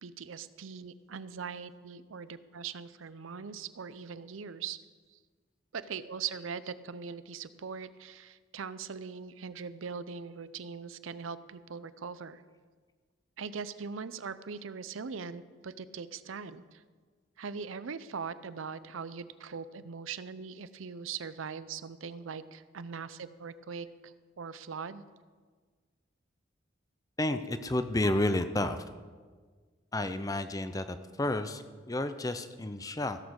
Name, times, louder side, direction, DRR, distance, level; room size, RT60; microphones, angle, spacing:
voice 1, 0.0-4.8 5.1-5.2 5.7-12.4 13.4-16.8 17.4-25.0, right 6 dB, 90° right, 15 dB, 0.6 m, -41 dB
voice 2, 27.2-28.8 29.9-33.2, left 1 dB, 20° left, 10 dB, 0.6 m, -31 dB
16.0 x 7.3 x 6.4 m, 1.5 s
head